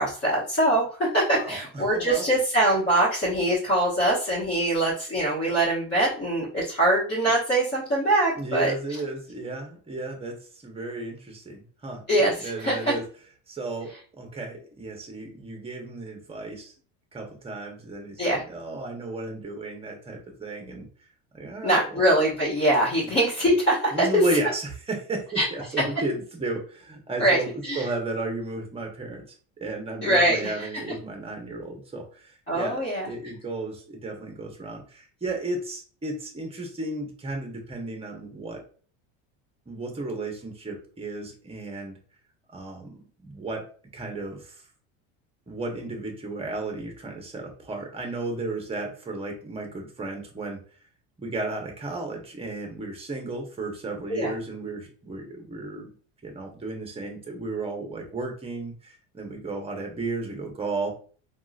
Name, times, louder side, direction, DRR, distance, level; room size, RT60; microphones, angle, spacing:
voice 1, 0.0-8.7 12.1-12.9 18.2-18.4 21.6-24.2 25.3-25.5 27.2-27.4 27.7-27.9 30.0-30.7 32.5-33.3 54.1-54.3, right 1 dB, 30° left, -9 dB, 1.4 m, -23 dB
voice 2, 1.3-2.2 8.4-12.0 12.4-13.0 13.5-16.7 17.1-20.9 21.3-22.1 23.9-29.2 29.6-38.6 39.7-42.0 42.5-43.6 43.9-44.6 45.5-50.6 51.2-55.9 56.2-60.9, right 2 dB, 15° right, 2 dB, 0.9 m, -34 dB
3.7 x 2.4 x 2.4 m, 0.42 s
supercardioid pair, 120°, 35 cm